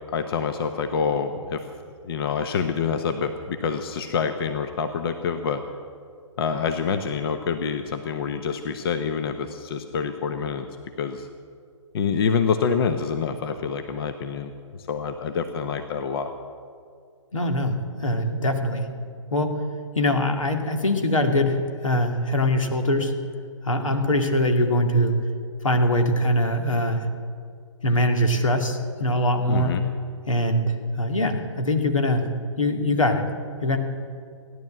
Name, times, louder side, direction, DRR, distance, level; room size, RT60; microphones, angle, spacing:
voice 1, 0.1-1.6 2.0-5.6 6.4-10.7 11.0-11.3 11.9-14.5 14.9-16.3 29.5-29.8, left 6 dB, 50° left, 8 dB, 1.0 m, -26 dB
voice 2, 17.3-18.9 19.3-19.6 19.9-23.1 23.6-25.2 25.6-27.1 27.8-29.8 30.3-32.3 32.6-33.3 33.6-33.8, left 1 dB, 85° left, 4 dB, 2.4 m, -22 dB
17.0 x 11.0 x 7.6 m, 2.3 s
hypercardioid pair, 140°, 16 cm